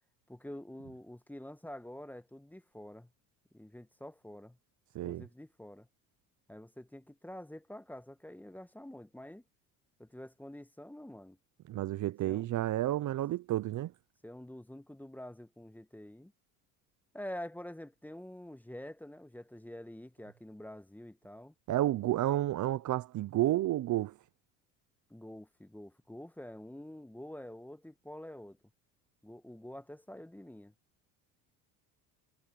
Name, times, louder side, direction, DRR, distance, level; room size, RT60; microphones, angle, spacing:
voice 1, 0.3-3.1 3.5-4.6 5.0-5.9 6.5-9.4 10.0-11.4 12.2-12.5 14.2-16.3 17.1-21.5 25.1-28.6 29.2-30.7, left 1 dB, 5° left, 1.4 m, -47 dB
voice 2, 11.7-13.9 21.7-24.1, right 14 dB, 45° right, 0.8 m, -31 dB
hypercardioid pair, 75°, 41 cm